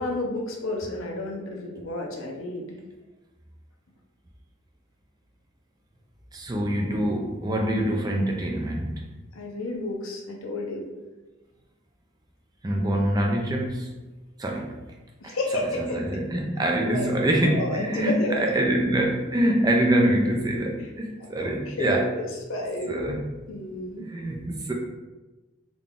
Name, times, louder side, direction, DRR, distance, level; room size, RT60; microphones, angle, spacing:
voice 1, 0.0-2.8 9.3-10.9 15.2-16.0 16.8-17.1 17.4-18.5 20.8-20.9 21.4-23.0 23.5-24.1, left 2 dB, 80° left, 1 dB, 0.7 m, -31 dB
voice 2, 6.3-9.0 12.6-13.9 14.4-14.7 15.2-15.4 15.9-22.1 22.9-23.2 24.1-24.7, right 1 dB, 20° right, 0 dB, 0.4 m, -25 dB
3.8 x 2.3 x 3.6 m, 1.1 s
head